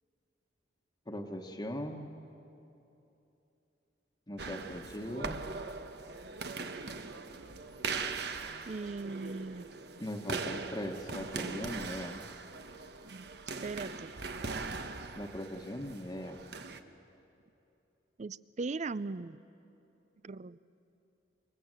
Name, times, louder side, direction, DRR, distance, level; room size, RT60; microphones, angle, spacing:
voice 1, 1.1-2.1 4.3-5.4 10.0-12.2 15.1-16.4, equal, 25° left, 1 dB, 1.3 m, -40 dB
sound 1, 4.4-16.8, right 4 dB, 65° right, 1.2 m, -40 dB
voice 2, 8.7-9.7 13.6-14.1 18.2-19.4 20.2-20.6, right 3 dB, 40° right, 17 dB, 0.5 m, -38 dB
26.5 x 24.5 x 7.8 m, 2.9 s
head